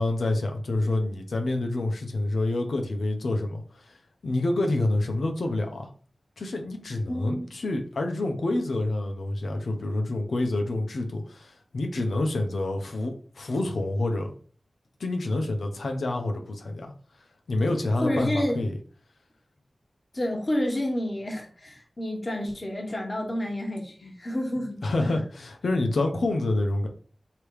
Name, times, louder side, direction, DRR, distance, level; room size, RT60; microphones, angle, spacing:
voice 1, 0.0-4.0 4.2-5.9 6.4-14.3 15.0-16.9 17.5-18.7 24.8-26.9, left 2 dB, 90° left, 0.7 m, -27 dB
voice 2, 7.1-7.5 18.0-18.6 20.1-25.2, left 1 dB, 40° left, 1.3 m, -29 dB
3.3 x 2.9 x 4.7 m
wide cardioid pair, 55°, 0 cm